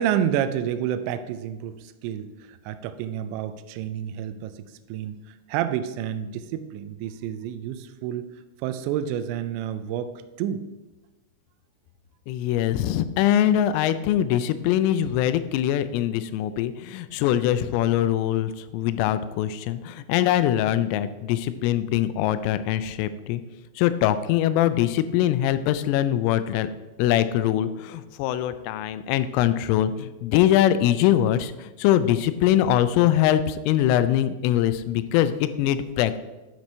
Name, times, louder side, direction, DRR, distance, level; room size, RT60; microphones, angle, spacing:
voice 1, 0.0-5.2 5.5-8.3 8.6-10.7, right 10 dB, 85° right, 10 dB, 2.6 m, -29 dB
voice 2, 12.3-23.4 23.8-26.7 27.0-36.2, left 11 dB, 90° left, 13 dB, 3.1 m, -23 dB
9.7 x 6.1 x 4.3 m, 1.1 s
omnidirectional pair, 5.7 m